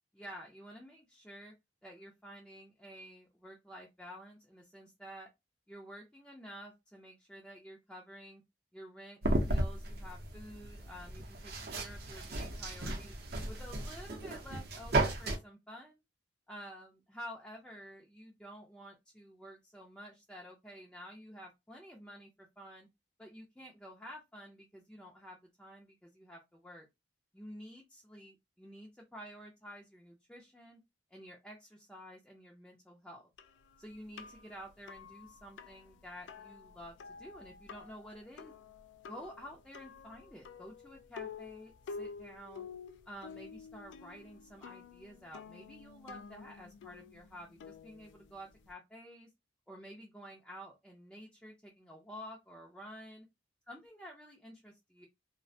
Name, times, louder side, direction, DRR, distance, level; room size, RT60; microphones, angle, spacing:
voice 1, 0.1-1.5 1.8-5.3 5.7-8.4 8.7-13.1 13.5-16.0 16.5-22.9 23.2-26.9 27.3-30.8 31.1-33.3 33.8-38.5 39.1-42.7 43.1-49.3 49.7-53.3 53.7-55.1, equal, 5° left, -1 dB, 0.4 m, -51 dB
sound 1, 9.2-15.4, right 2 dB, 60° right, 0.6 m, -35 dB
sound 2, 33.4-48.7, left 5 dB, 80° left, 0.3 m, -50 dB
2.4 x 2.1 x 2.6 m, 0.21 s
head